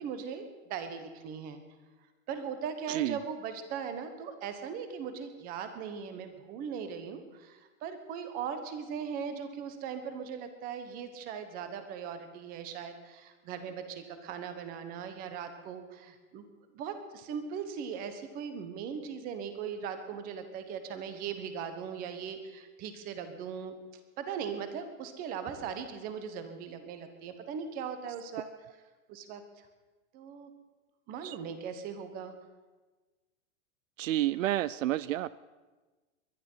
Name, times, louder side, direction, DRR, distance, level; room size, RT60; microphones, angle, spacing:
voice 1, 0.0-1.6 2.3-16.4 16.7-23.8 24.2-28.5 29.1-29.7 30.1-30.5 31.1-32.3, right 7 dB, 20° right, 8 dB, 1.3 m, -39 dB
voice 2, 2.9-3.2 31.2-31.4 34.0-35.4, right 14 dB, 75° right, 18 dB, 0.6 m, -30 dB
21.5 x 11.5 x 5.7 m, 1.3 s
supercardioid pair, 170°, 39 cm